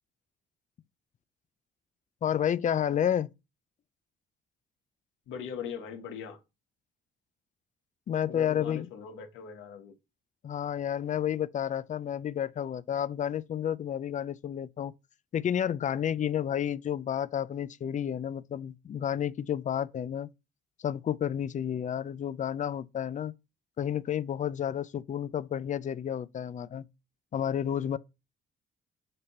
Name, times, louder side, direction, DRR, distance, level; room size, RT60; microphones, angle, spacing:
voice 1, 2.2-3.3 8.1-8.9 10.4-14.9 15.3-20.3 20.8-23.3 23.8-26.9 27.3-28.0, left 9 dB, 40° left, 0.4 m, -31 dB
voice 2, 5.3-6.4 8.2-10.0, left 7 dB, 85° left, 1.3 m, -40 dB
6.7 x 2.9 x 5.3 m
cardioid pair, 90°, 20 cm